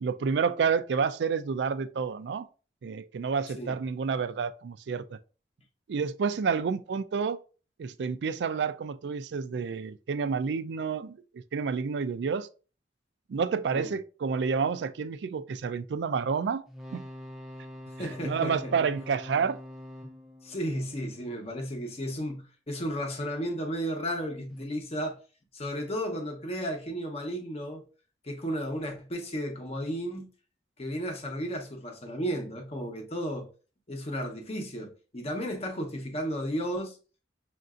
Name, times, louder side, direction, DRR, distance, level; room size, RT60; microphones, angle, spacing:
voice 1, 0.0-2.5 2.8-5.2 5.9-7.4 7.8-11.2 11.5-12.5 13.3-16.6 16.9-17.0 18.0-19.6, right 5 dB, 75° right, 0.4 m, -29 dB
sound 1, 16.7-21.7 24.5-24.6, left 1 dB, 5° right, 0.5 m, -45 dB
voice 2, 18.0-18.8 20.4-25.2 25.5-27.9 28.2-30.3 30.8-33.5 33.9-37.0, equal, 35° left, 0.9 m, -33 dB
6.5 x 2.6 x 2.4 m
head